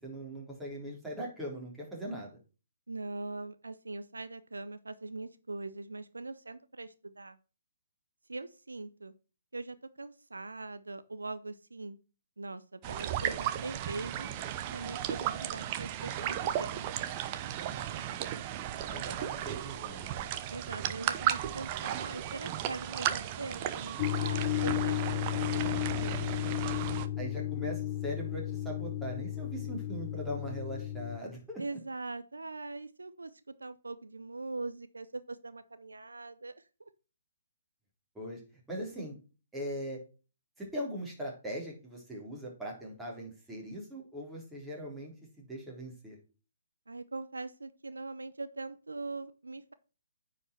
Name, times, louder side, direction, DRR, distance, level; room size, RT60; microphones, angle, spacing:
voice 1, 0.0-2.4 17.7-20.3 27.2-31.6 38.2-38.4 38.7-39.2 39.5-40.0 40.6-46.2, equal, 5° right, -3 dB, 3.6 m, -41 dB
voice 2, 2.9-7.4 8.3-9.1 9.5-12.0 12.4-14.3 14.7-16.9 20.5-26.7 31.6-36.9 46.9-49.7, right 3 dB, 80° right, 13 dB, 0.7 m, -42 dB
sound 1, 12.8-27.1, right 11 dB, 30° right, 0.8 m, -35 dB
sound 2, 24.0-31.2, left 13 dB, 35° left, 0.4 m, -33 dB
9.6 x 5.0 x 4.4 m, 0.33 s
figure-of-eight pair, 130°, 0 cm